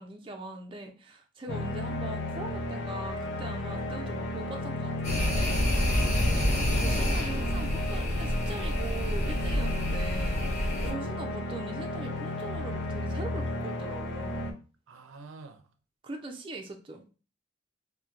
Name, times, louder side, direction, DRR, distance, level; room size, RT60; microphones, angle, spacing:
voice 1, 0.0-5.7 6.8-10.4 10.8-14.6 16.0-17.0, right 2 dB, 25° right, 3 dB, 0.4 m, -41 dB
sound 1, 1.5-14.5, left 2 dB, 65° left, 0.6 m, -34 dB
sound 2, 5.0-10.9, equal, 35° left, 1.2 m, -28 dB
voice 2, 14.9-15.6, right 3 dB, 85° right, 7 dB, 0.5 m, -47 dB
4.2 x 2.1 x 2.4 m, 0.34 s
head